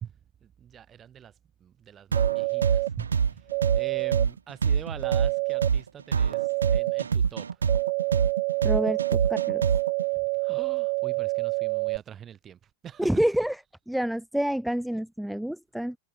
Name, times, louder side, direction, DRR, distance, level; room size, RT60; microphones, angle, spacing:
voice 1, 0.4-1.3 1.6-3.5 3.7-6.4 6.7-7.5 10.4-13.1, right 9 dB, 25° right, 2.2 m, -44 dB
sound 1, 2.1-2.9 3.5-4.3 5.0-5.7 6.3-7.0 7.7-12.0, right 39 dB, 45° right, 1.8 m, -28 dB
sound 2, 2.1-10.0, right 6 dB, 70° right, 1.5 m, -25 dB
voice 2, 8.6-9.6 13.0-13.6 13.9-16.0, equal, ahead, 1.0 m, -28 dB
figure-of-eight pair, 90°, 0 cm